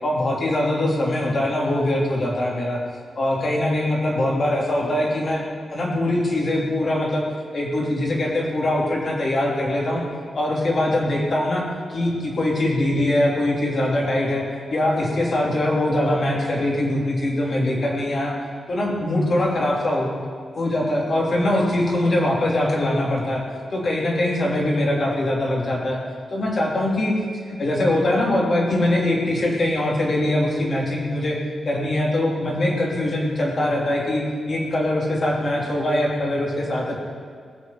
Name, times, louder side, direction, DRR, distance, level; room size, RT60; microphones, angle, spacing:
voice 1, 0.0-2.8 3.1-5.4 5.7-7.2 7.5-10.0 10.3-11.6 11.9-14.5 14.7-18.3 18.7-20.1 20.5-23.4 23.7-26.0 26.3-27.1 27.5-31.4 31.6-37.0, left 1 dB, 40° left, -2 dB, 3.3 m, -22 dB
19.5 x 7.1 x 7.9 m, 2.2 s
wide cardioid pair, 145°, 0 cm